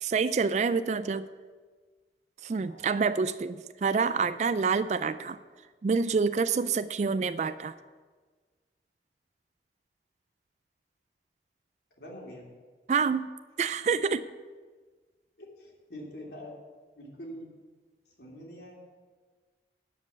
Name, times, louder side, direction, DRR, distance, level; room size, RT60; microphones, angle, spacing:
voice 1, 0.0-1.3 2.4-5.4 5.8-7.7 12.9-13.3 13.6-14.2, right 5 dB, 40° right, 12 dB, 0.3 m, -27 dB
voice 2, 2.7-3.0 12.0-12.4 15.4-16.5 16.9-17.5 18.1-18.8, equal, 70° left, -2 dB, 2.9 m, -45 dB
11.5 x 5.3 x 8.5 m, 1.4 s
head